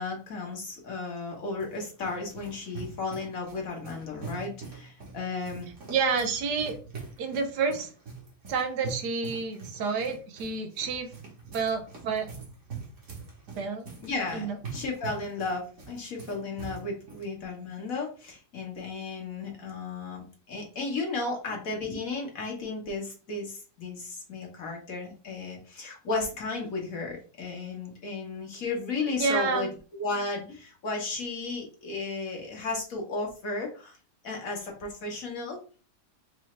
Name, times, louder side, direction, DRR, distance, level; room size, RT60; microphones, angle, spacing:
voice 1, 0.0-5.7 14.0-34.0 34.2-35.6, left 3 dB, 55° left, 0 dB, 1.5 m, -34 dB
sound 1, 1.2-17.3, right 4 dB, 50° right, 1.5 m, -44 dB
voice 2, 5.9-6.8 7.2-7.9 8.5-11.1 11.5-12.3 13.5-13.9 14.3-14.5 29.2-29.7, right 5 dB, 80° right, 6 dB, 1.3 m, -29 dB
4.7 x 2.7 x 3.1 m, 0.37 s
omnidirectional pair, 1.8 m